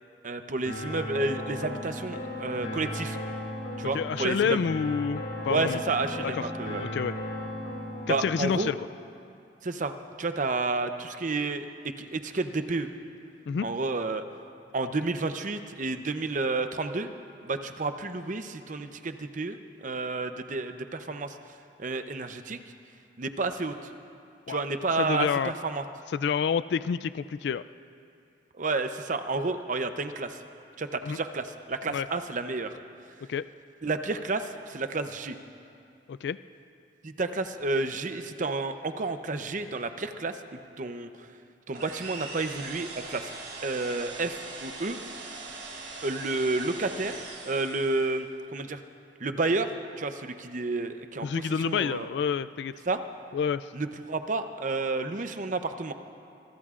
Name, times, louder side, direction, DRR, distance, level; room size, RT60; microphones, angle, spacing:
voice 1, 0.2-3.2 3.8-4.6 5.5-6.8 8.1-8.7 9.6-12.9 13.6-14.2 14.7-17.1 17.4-21.4 21.8-22.6 23.2-23.9 24.5-25.8 28.6-30.4 30.8-32.7 33.8-35.4 37.0-41.3 41.7-43.3 43.6-45.0 46.0-47.2 47.4-48.8 49.2-49.7 50.0-52.1 52.9-53.0 53.7-55.9, right 3 dB, 45° right, 8 dB, 0.7 m, -30 dB
sound 1, 0.7-8.7, left 1 dB, 85° left, 2.5 m, -36 dB
voice 2, 3.9-5.8 6.2-6.5 6.8-7.1 8.1-8.8 13.5-13.7 24.5-25.5 26.1-27.6 31.0-31.2 31.9-32.1 33.3-33.5 36.1-36.4 51.2-52.7 53.3-53.7, left 6 dB, 65° left, 15 dB, 0.3 m, -28 dB
sound 2, 41.7-48.2, right 3 dB, 65° right, 4.4 m, -41 dB
24.5 x 22.0 x 2.5 m, 2.5 s
head